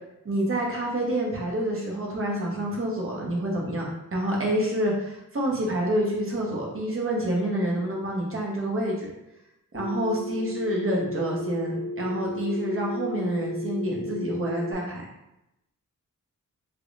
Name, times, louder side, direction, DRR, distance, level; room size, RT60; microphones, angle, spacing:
voice 1, 0.2-9.1 9.7-15.0, right 1 dB, 40° right, -2 dB, 1.0 m, -28 dB
Telephone, 9.7-14.7, left 1 dB, 70° left, 1.1 m, -34 dB
3.5 x 3.0 x 2.4 m, 0.88 s
wide cardioid pair, 120°, 32 cm